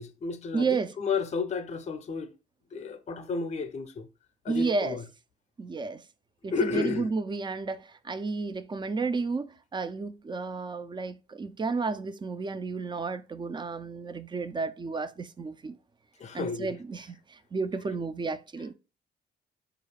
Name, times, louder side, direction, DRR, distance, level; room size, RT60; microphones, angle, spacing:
voice 1, 0.0-2.3 2.7-4.1 4.4-5.0 6.5-7.1 16.2-16.7, left 5 dB, 35° left, 0.5 m, -32 dB
voice 2, 0.5-0.9 4.5-5.0 5.6-6.0 6.4-15.8 16.3-18.7, right 4 dB, 25° right, 0.3 m, -32 dB
4.5 x 2.4 x 3.2 m
cardioid pair, 90°, 20 cm